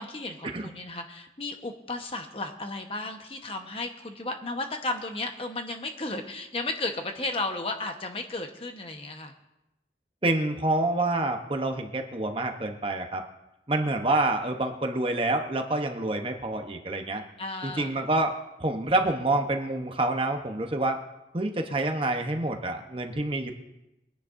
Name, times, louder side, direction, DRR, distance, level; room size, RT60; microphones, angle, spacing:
voice 1, 0.0-9.3 17.4-17.9, left 2 dB, 30° left, 4 dB, 1.1 m, -34 dB
voice 2, 10.2-13.2 13.7-17.2 17.6-21.0 21.3-23.5, right 2 dB, 30° right, 5 dB, 0.9 m, -27 dB
22.5 x 10.5 x 2.6 m, 0.92 s
head